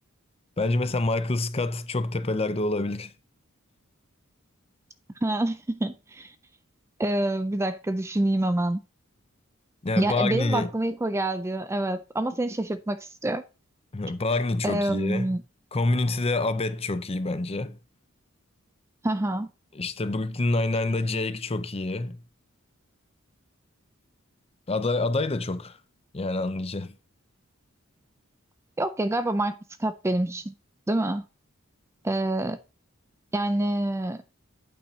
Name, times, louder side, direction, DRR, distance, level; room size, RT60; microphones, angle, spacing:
voice 1, 0.6-3.1 9.8-10.7 13.9-15.4 15.7-17.8 19.8-22.2 24.7-25.8 26.1-26.9, left 2 dB, 30° left, 0.6 m, -27 dB
voice 2, 5.2-6.3 7.0-8.8 10.0-13.4 14.6-15.4 19.0-19.5 28.8-30.5 30.9-31.2 32.0-32.6 33.3-34.2, right 1 dB, 15° right, 0.4 m, -27 dB
8.7 x 8.6 x 2.8 m
head